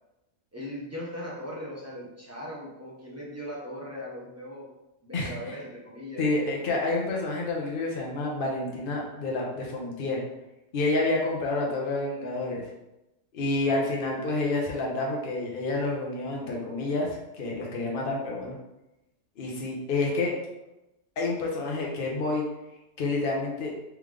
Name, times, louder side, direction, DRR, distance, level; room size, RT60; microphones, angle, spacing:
voice 1, 0.5-4.6 5.0-6.2, equal, 15° right, -5 dB, 0.9 m, -39 dB
voice 2, 5.1-5.5 6.2-10.2 10.7-12.6 13.3-18.6 19.4-20.3 21.2-22.5 23.0-23.7, left 2 dB, 50° left, -1 dB, 1.0 m, -29 dB
3.6 x 3.4 x 3.3 m, 0.95 s
omnidirectional pair, 1.3 m